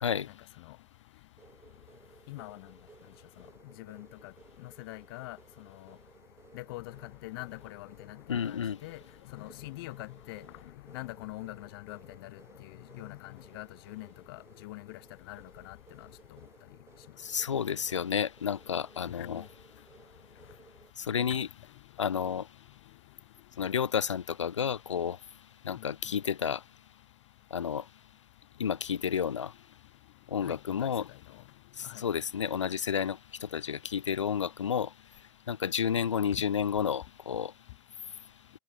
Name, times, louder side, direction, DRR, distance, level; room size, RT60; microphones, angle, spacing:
sound 1, 1.4-20.9, right 5 dB, 15° right, 7.7 m, -59 dB
voice 1, 2.3-2.7 3.8-4.3 4.6-6.0 6.5-9.0 9.3-10.5 10.9-15.0 15.3-16.1 19.2-19.5 25.8-25.9 30.4-30.9 31.3-31.4 31.8-32.0, left 21 dB, 50° left, 2.0 m, -44 dB
voice 2, 8.3-8.8 17.2-19.4 21.0-21.5 22.0-22.5 23.6-25.2 25.6-26.6 27.5-27.8 28.6-29.5 30.3-31.1 31.8-34.9 35.5-37.5, left 7 dB, 70° left, 0.9 m, -31 dB
figure-of-eight pair, 90°, 16 cm